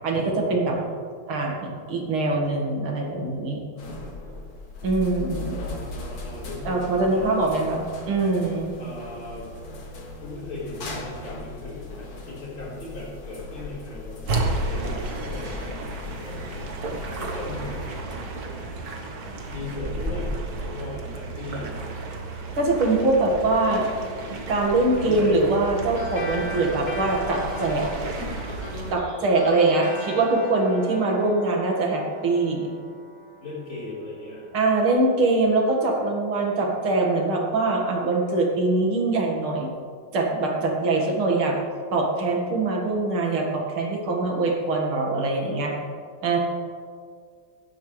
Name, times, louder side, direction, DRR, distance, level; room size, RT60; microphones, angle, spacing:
voice 1, 0.0-0.8 1.3-3.6 4.8-5.6 6.7-8.7 22.6-23.8 24.5-27.9 28.9-32.7 34.5-39.7 40.1-41.6 41.9-45.7 46.2-46.4, right 2 dB, 80° right, -1 dB, 2.7 m, -23 dB
voice 2, 3.7-4.4 5.6-7.7 8.8-9.5 10.2-15.7 16.1-16.5 17.2-17.9 19.4-21.7 22.7-22.8 23.3-23.9 24.9-25.4 26.3-26.6 33.4-34.5, left 2 dB, 75° left, -7 dB, 5.1 m, -38 dB
sound 1, 3.8-18.0, left 2 dB, 50° left, 1.9 m, -38 dB
sound 2, 14.3-28.9, right 2 dB, 50° right, 1.7 m, -32 dB
sound 3, 26.0-34.8, equal, 25° left, 1.3 m, -39 dB
16.5 x 11.5 x 3.3 m, 2.1 s
omnidirectional pair, 2.3 m